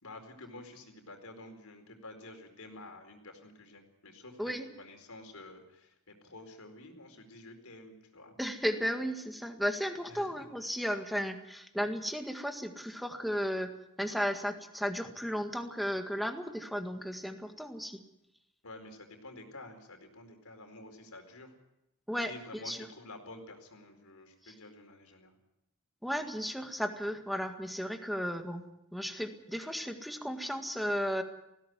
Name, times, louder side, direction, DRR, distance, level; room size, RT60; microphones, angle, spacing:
voice 1, 0.0-8.3 10.1-10.5 18.6-21.5 22.3-25.3, left 2 dB, 90° left, 4 dB, 4.5 m, -50 dB
voice 2, 4.4-4.7 8.4-13.7 14.0-18.0 22.1-22.9 26.0-28.6 28.9-31.2, equal, ahead, 6 dB, 1.8 m, -34 dB
19.0 x 16.5 x 9.4 m, 0.86 s
head